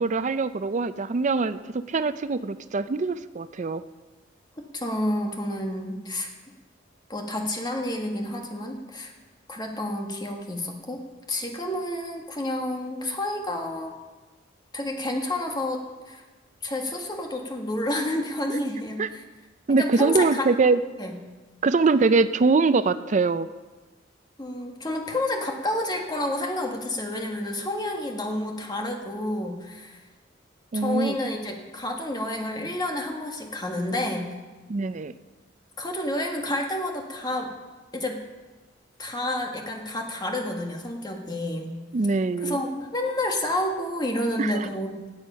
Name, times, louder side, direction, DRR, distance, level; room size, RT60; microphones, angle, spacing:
voice 1, 0.0-3.8 18.5-18.6 19.0-19.1 19.7-20.8 21.6-23.5 30.7-31.1 34.7-35.1 41.9-42.6 44.4-44.7, right 4 dB, 40° right, 13 dB, 0.4 m, -23 dB
voice 2, 4.7-6.3 7.1-9.1 9.5-11.0 11.3-13.9 14.7-15.8 16.1-16.2 16.6-19.2 19.7-20.5 21.0-21.2 24.4-30.0 30.7-34.3 35.8-37.5 37.9-38.2 39.0-41.7 42.4-45.0, left 1 dB, 20° left, 2 dB, 1.6 m, -29 dB
17.5 x 8.0 x 5.6 m, 1.3 s
head